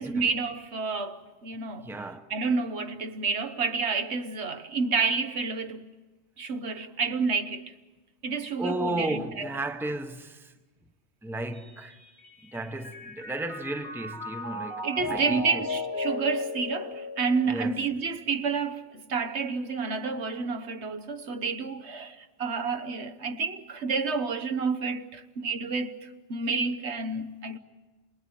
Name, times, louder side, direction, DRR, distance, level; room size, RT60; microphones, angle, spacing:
voice 1, 0.0-1.9 2.3-5.9 6.4-7.6 8.2-9.5 14.8-26.0 26.3-27.6, right 4 dB, 65° right, 1.3 m, -29 dB
voice 2, 1.8-2.3 8.6-10.5 11.2-12.0 12.5-15.6 17.5-17.8, right 1 dB, ahead, 1.0 m, -34 dB
Mallet percussion, 11.5-18.0, left 2 dB, 55° left, 2.1 m, -36 dB
28.0 x 21.0 x 9.3 m
omnidirectional pair, 1.2 m